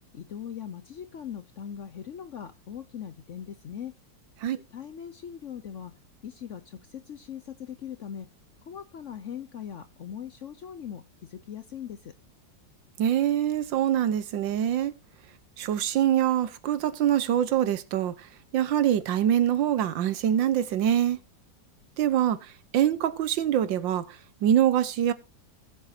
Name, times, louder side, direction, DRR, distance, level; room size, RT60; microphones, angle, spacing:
voice 1, 0.1-3.9 4.7-5.9 6.2-8.3 8.7-12.1, left 9 dB, 60° left, 0.8 m, -40 dB
voice 2, 13.0-14.9 15.6-18.1 18.5-21.2 22.0-22.4 22.7-24.0 24.4-25.1, right 10 dB, 85° right, 1.6 m, -24 dB
19.5 x 7.4 x 2.7 m
omnidirectional pair, 2.0 m